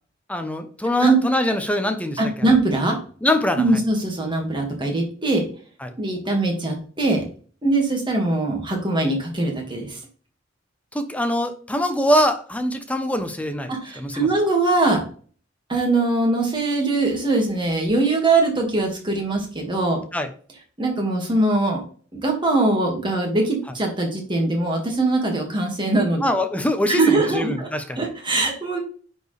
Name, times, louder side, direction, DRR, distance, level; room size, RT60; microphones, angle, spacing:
voice 1, 0.3-2.5 3.2-3.6 5.8-5.9 10.9-14.3 20.1-20.3 26.2-28.0, left 1 dB, 5° left, 8 dB, 0.8 m, -23 dB
voice 2, 2.2-3.0 3.6-5.4 6.0-7.3 7.6-10.0 13.7-15.0 15.7-20.0 20.8-21.8 22.1-26.2 26.9-27.7 28.0-28.8, right 2 dB, 25° right, 0 dB, 1.9 m, -21 dB
9.9 x 4.5 x 3.3 m, 0.42 s
head